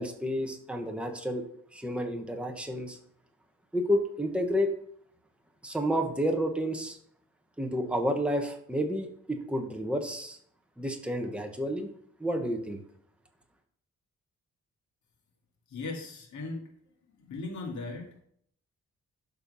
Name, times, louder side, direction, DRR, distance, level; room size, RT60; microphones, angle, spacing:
voice 1, 0.0-1.4 1.7-3.0 3.7-4.7 5.6-7.0 7.6-10.4 10.8-11.9 12.2-12.8, equal, 5° right, 3 dB, 1.2 m, -30 dB
voice 2, 15.7-16.7 17.2-18.2, left 3 dB, 75° left, 0 dB, 2.4 m, -38 dB
12.0 x 4.5 x 5.5 m, 0.64 s
wide cardioid pair, 155°, 29 cm